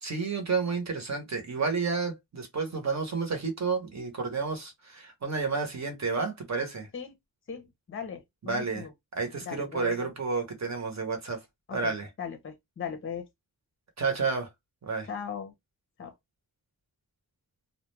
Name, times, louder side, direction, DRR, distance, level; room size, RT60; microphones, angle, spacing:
voice 1, 0.0-6.9 8.4-8.9 9.1-11.4 11.7-12.1 14.0-14.5 14.8-15.1, right 4 dB, 45° right, 0.9 m, -31 dB
voice 2, 7.5-8.9 9.4-10.0 11.7-13.3 15.1-15.5 16.0-16.1, left 7 dB, 35° left, 0.5 m, -38 dB
2.3 x 2.1 x 3.1 m
wide cardioid pair, 135°, 37 cm